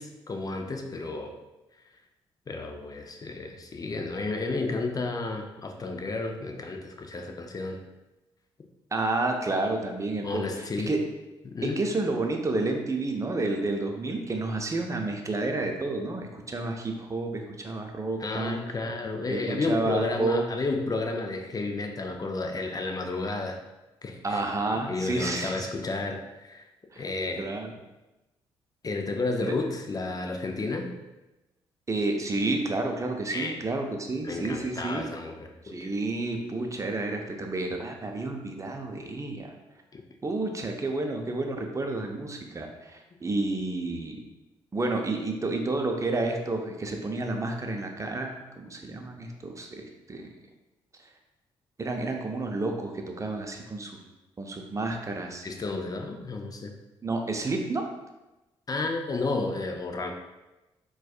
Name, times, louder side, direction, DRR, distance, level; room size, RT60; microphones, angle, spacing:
voice 1, 0.0-1.4 2.5-7.8 10.2-10.9 11.4-11.8 18.2-23.6 24.0-24.4 24.7-26.7 27.0-27.5 28.8-30.9 33.3-33.6 34.2-35.9 39.9-40.0 55.4-56.7 58.7-60.1, left 3 dB, 30° left, 4 dB, 0.5 m, -32 dB
voice 2, 8.9-11.0 11.6-18.6 19.3-20.4 24.2-25.7 26.9-27.0 27.4-27.7 29.4-29.5 31.9-35.1 35.6-39.5 40.2-44.2 44.7-50.3 51.8-54.0 54.4-55.5 57.0-57.9, right 2 dB, 25° right, 3 dB, 0.6 m, -30 dB
4.1 x 2.3 x 2.3 m, 1.0 s
hypercardioid pair, 45°, 13 cm